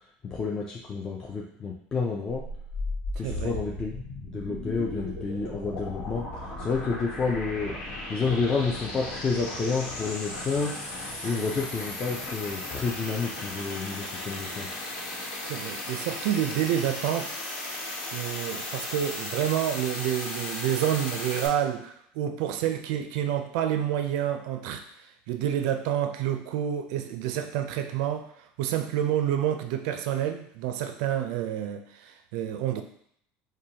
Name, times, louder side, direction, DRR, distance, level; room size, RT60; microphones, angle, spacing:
voice 1, 0.2-2.4 3.2-4.0 4.3-6.2 6.6-7.8 8.1-10.7 11.2-14.7, left 4 dB, 15° left, -3 dB, 0.3 m, -29 dB
sound 1, 2.3-21.5, left 2 dB, 85° left, 1.2 m, -36 dB
voice 2, 3.2-3.6 11.2-11.5 15.5-17.4 18.1-24.8 25.3-28.3 28.6-32.8, right 10 dB, 65° right, 7 dB, 0.4 m, -28 dB
4.8 x 2.2 x 2.8 m, 0.66 s
cardioid pair, 170°, 4 cm